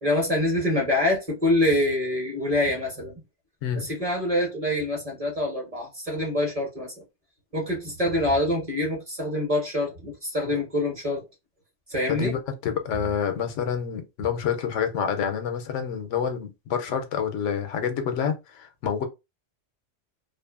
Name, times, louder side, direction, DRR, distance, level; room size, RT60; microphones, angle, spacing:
voice 1, 0.0-3.1 3.8-6.9 7.5-11.2 11.9-12.3, left 1 dB, 35° right, 0.8 m, -25 dB
voice 2, 12.1-19.0, left 7 dB, 90° left, 0.9 m, -28 dB
2.6 x 2.4 x 2.3 m
omnidirectional pair, 1.2 m